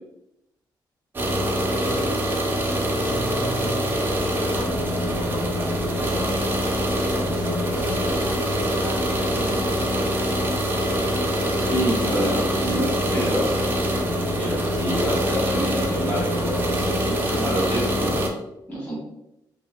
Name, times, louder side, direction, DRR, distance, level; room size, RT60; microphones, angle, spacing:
sound 1, 1.1-18.3, equal, 25° right, 0.4 m, -24 dB
voice 1, 1.8-2.3 2.6-4.6 5.0-10.0, left 2 dB, 90° left, -1 dB, 0.5 m, -39 dB
voice 2, 11.7-13.5 14.4-16.5 17.0-18.2 18.7-18.9, equal, 20° left, -7 dB, 1.4 m, -27 dB
2.7 x 2.3 x 2.2 m, 0.87 s
cardioid pair, 140°, 8 cm